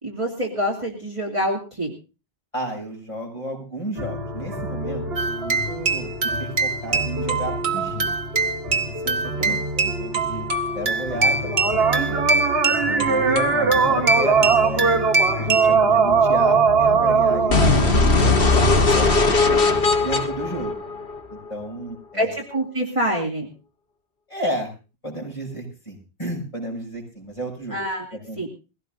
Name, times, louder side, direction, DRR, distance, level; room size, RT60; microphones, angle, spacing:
voice 1, 0.0-1.9 9.4-9.6 22.1-23.5 27.7-28.1 28.4-28.5, equal, 30° right, -2 dB, 2.6 m, -26 dB
voice 2, 2.5-8.1 9.0-12.2 12.8-15.0 15.4-19.5 20.0-20.7 21.3-22.3 24.3-24.7 25.0-27.8 28.1-28.5, right 1 dB, 30° left, -1 dB, 6.7 m, -32 dB
sound 1, 4.0-18.2, right 4 dB, 70° right, 1.6 m, -22 dB
sound 2, 5.2-15.7, right 3 dB, 50° right, 1.2 m, -24 dB
sound 3, 17.5-21.5, left 3 dB, 65° left, 1.6 m, -18 dB
22.0 x 16.5 x 2.6 m, 0.32 s
omnidirectional pair, 1.0 m